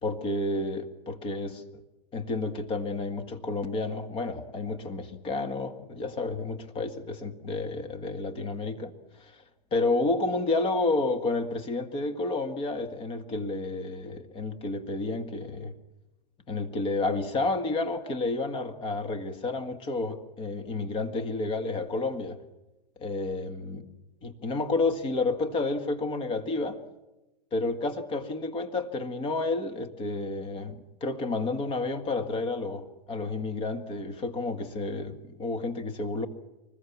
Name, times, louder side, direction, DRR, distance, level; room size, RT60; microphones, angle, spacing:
voice 1, 0.0-1.8 2.1-9.4 9.7-15.7 16.5-22.4 23.0-23.8 24.2-26.8 27.5-36.3, left 3 dB, 25° left, 8 dB, 1.8 m, -30 dB
24.5 x 21.0 x 7.2 m, 1.1 s
supercardioid pair, 150°, 21 cm